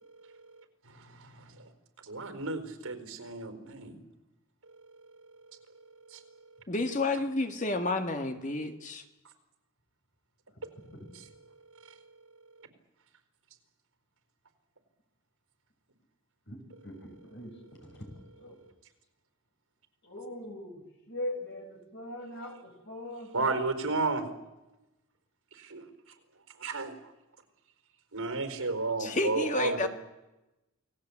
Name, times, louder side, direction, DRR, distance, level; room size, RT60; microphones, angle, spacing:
voice 1, 2.1-4.0 6.1-6.2 23.3-24.3 25.6-25.8 26.6-26.9 28.1-29.9, right 3 dB, 85° right, 8 dB, 4.5 m, -32 dB
voice 2, 6.7-9.0 29.0-29.9, left 2 dB, 35° left, 6 dB, 1.9 m, -30 dB
voice 3, 16.8-17.5 17.8-18.6 20.0-23.7, left 1 dB, 50° left, 3 dB, 6.2 m, -41 dB
28.5 x 19.0 x 8.6 m, 1.0 s
head